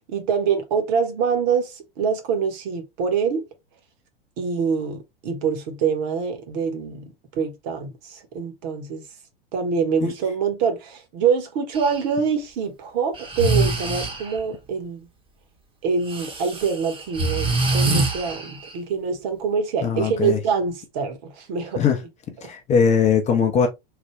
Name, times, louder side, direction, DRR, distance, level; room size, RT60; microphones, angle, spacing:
voice 1, 0.1-3.4 4.4-9.0 9.5-15.0 15.8-21.8 22.4-22.5, right 6 dB, 45° right, 1.0 m, -25 dB
Breathing, 11.7-12.0 13.1-14.4 16.1-18.8, right 2 dB, 20° right, 0.9 m, -25 dB
voice 2, 19.8-20.4 21.7-22.0 22.4-23.7, left 6 dB, 25° left, 0.7 m, -20 dB
3.3 x 2.2 x 3.1 m
figure-of-eight pair, 90°, 30 cm